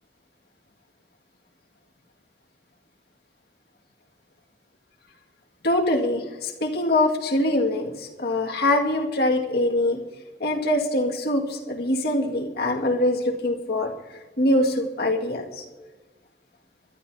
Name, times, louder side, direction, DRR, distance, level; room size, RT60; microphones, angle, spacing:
voice 1, 5.6-10.0 10.4-13.9 14.4-15.6, left 1 dB, 60° left, 1 dB, 2.1 m, -23 dB
25.5 x 12.5 x 2.8 m, 1.2 s
head